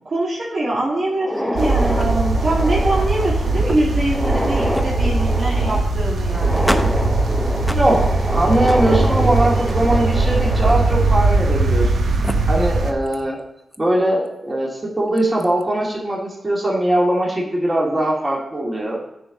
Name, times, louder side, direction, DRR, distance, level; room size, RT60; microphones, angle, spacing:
voice 1, 0.1-6.7, right 1 dB, 60° right, -6 dB, 2.1 m, -23 dB
sound 1, 1.1-11.9 12.2-12.3 13.1-13.2 13.7-13.8 15.2-15.4, equal, ahead, 0.8 m, -26 dB
sound 2, 1.6-12.9, right 3 dB, 80° right, 0.9 m, -20 dB
voice 2, 7.7-11.9 12.5-13.4 13.8-19.0, right 1 dB, 25° right, -4 dB, 2.2 m, -20 dB
9.7 x 3.9 x 5.0 m, 0.84 s
cardioid pair, 55°, 0 cm